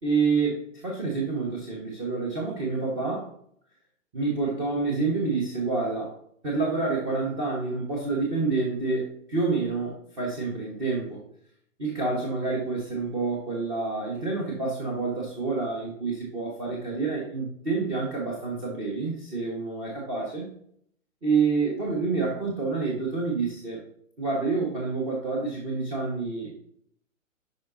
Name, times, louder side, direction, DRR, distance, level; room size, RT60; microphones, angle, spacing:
voice 1, 0.0-3.3 4.1-6.1 6.4-11.2 11.8-20.5 21.2-23.8 24.2-26.6, right 4 dB, 15° right, -3 dB, 1.3 m, -28 dB
9.4 x 5.1 x 2.7 m, 0.65 s
hypercardioid pair, 150°, 41 cm